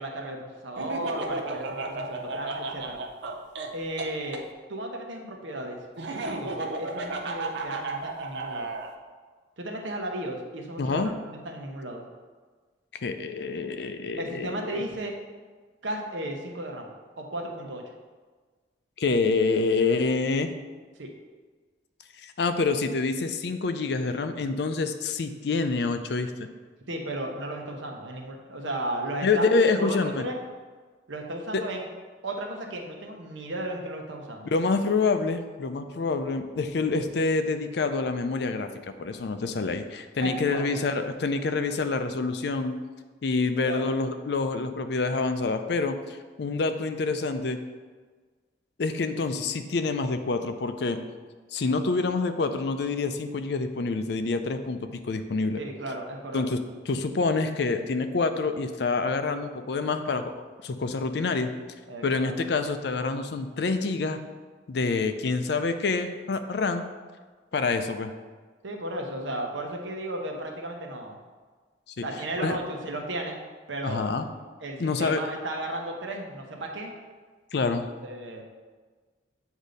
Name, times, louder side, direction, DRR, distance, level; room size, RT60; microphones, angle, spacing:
voice 1, 0.0-3.0 3.7-4.4 4.7-5.8 6.1-8.7 9.6-12.0 14.2-15.2 15.8-17.8 21.0-21.1 26.9-30.4 31.1-31.8 32.2-34.5 40.2-40.9 43.6-43.9 55.6-56.5 61.9-62.3 68.6-71.2 72.0-73.4 73.7-74.1 74.6-76.9 77.8-78.4, right 1 dB, 85° right, 2 dB, 0.9 m, -34 dB
Laughter, 0.8-4.4 6.0-8.9, right 3 dB, 65° right, 0.5 m, -33 dB
voice 2, 10.8-11.1 12.9-14.8 19.0-20.5 22.2-26.5 29.2-30.2 31.5-31.6 34.5-42.8 43.2-47.6 48.8-51.0 51.5-55.6 56.3-56.6 56.9-60.3 60.6-61.5 62.0-64.2 64.7-66.9 67.5-68.1 72.0-72.1 72.4-72.6 73.8-74.3 74.8-75.2 77.5-77.9, left 3 dB, 60° left, 8 dB, 0.4 m, -27 dB
8.0 x 2.7 x 5.1 m, 1.4 s
head